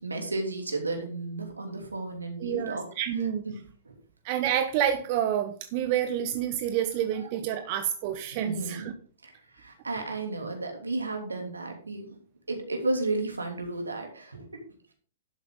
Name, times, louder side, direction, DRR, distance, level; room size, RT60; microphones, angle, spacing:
voice 1, 0.0-2.8 3.4-3.6 3.8-3.9 8.4-8.9 9.2-12.1 12.5-14.6, right 2 dB, 85° right, 3 dB, 2.8 m, -33 dB
voice 2, 2.4-3.4 4.2-8.9, right 10 dB, 45° right, 8 dB, 1.0 m, -28 dB
11.5 x 7.9 x 3.8 m, 0.42 s
figure-of-eight pair, 110°, 0 cm